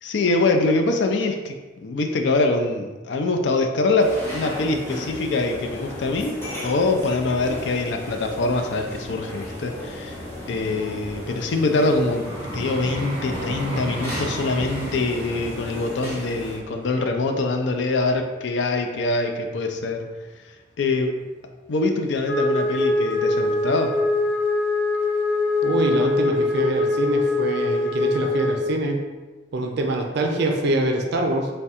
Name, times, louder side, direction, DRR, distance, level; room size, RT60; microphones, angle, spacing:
voice 1, 0.0-1.6 1.8-10.2 10.5-20.0 20.8-21.1 21.7-23.9, left 2 dB, 65° left, 4 dB, 0.4 m, -24 dB
sound 1, 4.0-16.6, left 1 dB, 15° left, 1.0 m, -35 dB
Vehicle, 10.1-19.2 19.8-20.0, right 1 dB, 30° right, 1.1 m, -36 dB
Wind instrument woodwind instrument, 22.3-28.7, left 2 dB, 85° left, 1.0 m, -22 dB
voice 2, 25.6-29.0 29.5-31.5, right 2 dB, 60° right, 2 dB, 0.4 m, -24 dB
3.5 x 2.2 x 4.2 m, 1.2 s
head